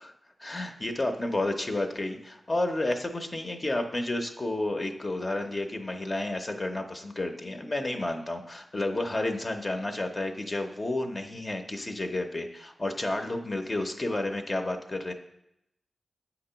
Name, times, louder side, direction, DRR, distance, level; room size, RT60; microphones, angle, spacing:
voice 1, 0.4-15.1, left 2 dB, 40° left, 4 dB, 0.7 m, -31 dB
8.2 x 2.9 x 5.6 m, 0.81 s
cardioid pair, 55°, 0 cm